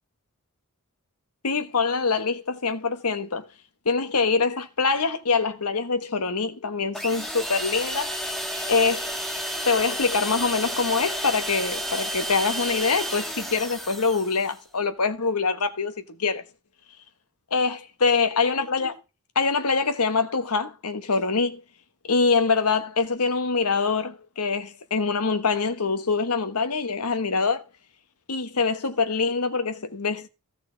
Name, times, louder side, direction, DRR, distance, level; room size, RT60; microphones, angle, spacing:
voice 1, 1.4-3.5 3.8-8.1 8.7-9.1 9.6-16.4 17.5-19.0 19.3-21.6 22.1-27.6 28.3-30.3, left 4 dB, 90° left, 1.3 m, -24 dB
sound 1, 6.9-14.6, equal, ahead, 1.8 m, -31 dB
16.0 x 5.6 x 3.9 m
head